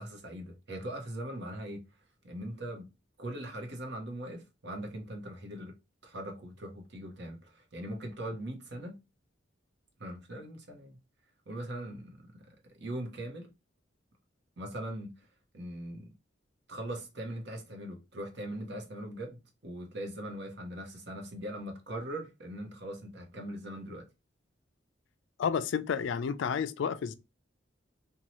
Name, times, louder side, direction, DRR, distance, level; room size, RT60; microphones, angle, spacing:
voice 1, 0.0-1.8 2.2-2.9 3.2-5.7 6.0-9.0 10.0-11.0 11.5-12.4 12.8-13.5 14.6-15.3 15.5-16.1 16.7-24.1, right 1 dB, 60° right, 0.8 m, -40 dB
voice 2, 25.4-27.1, left 7 dB, 70° left, 0.3 m, -31 dB
2.7 x 2.3 x 2.9 m
head